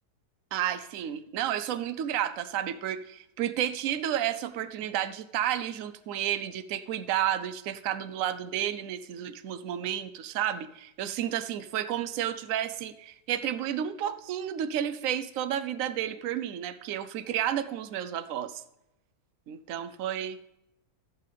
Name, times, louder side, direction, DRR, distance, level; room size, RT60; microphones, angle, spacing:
voice 1, 0.5-18.6 19.5-20.4, right 10 dB, 65° right, 12 dB, 0.9 m, -31 dB
15.0 x 8.5 x 3.4 m, 0.89 s
omnidirectional pair, 1.7 m